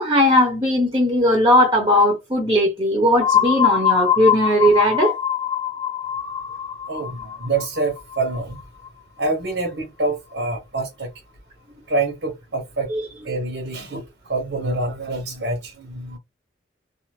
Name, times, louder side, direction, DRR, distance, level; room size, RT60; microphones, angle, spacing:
voice 1, 0.0-5.1 12.9-13.1, equal, 25° right, 0.7 m, -18 dB
sound 1, 3.2-8.9, left 9 dB, 30° left, 0.9 m, -23 dB
voice 2, 6.9-8.6 9.2-11.1 11.9-12.9 13.2-14.0 14.3-16.2, right 2 dB, 85° right, 1.0 m, -26 dB
2.5 x 2.4 x 3.0 m
head